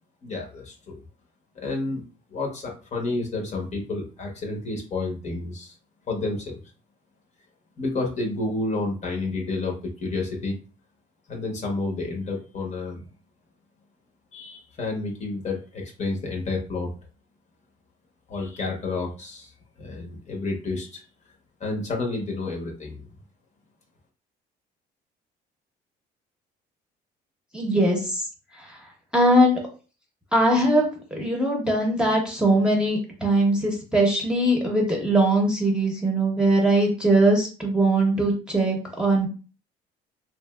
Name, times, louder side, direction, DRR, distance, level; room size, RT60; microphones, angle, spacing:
voice 1, 0.2-1.0 1.5-2.0 2.3-5.7 6.1-6.6 7.8-10.5 11.3-13.0 14.3-16.9 18.3-19.5 19.8-21.0 21.6-23.1, left 3 dB, 45° left, 1 dB, 0.9 m, -30 dB
voice 2, 27.5-28.2 28.6-28.8 29.1-29.6 30.3-39.3, right 1 dB, 5° right, -1 dB, 0.8 m, -21 dB
2.9 x 2.6 x 2.3 m, 0.35 s
cardioid pair, 110°, 17 cm